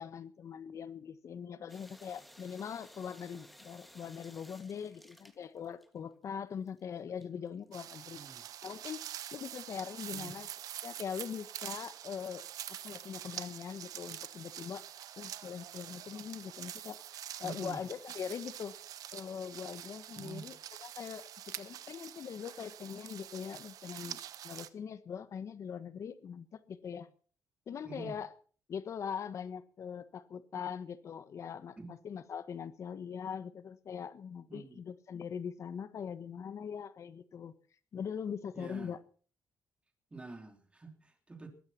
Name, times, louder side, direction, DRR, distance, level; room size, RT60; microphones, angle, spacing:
voice 1, 0.0-8.2 8.6-9.0 9.3-10.5 10.8-12.4 12.8-14.9 15.2-18.7 19.1-21.3 21.6-24.2 24.4-27.1 27.7-28.3 28.7-37.5 37.9-39.0, left 7 dB, 55° left, 1.3 m, -42 dB
sound 1, 1.7-6.2 6.7-9.7, equal, ahead, 1.9 m, -58 dB
sound 2, 7.7-24.7, right 11 dB, 75° right, 1.1 m, -46 dB
voice 2, 17.4-17.8 20.2-20.5 27.8-28.2 31.8-31.9 34.5-34.8 38.5-38.9 40.1-41.5, right 4 dB, 20° right, 3.6 m, -46 dB
21.0 x 9.3 x 5.9 m
cardioid pair, 100°, 6 cm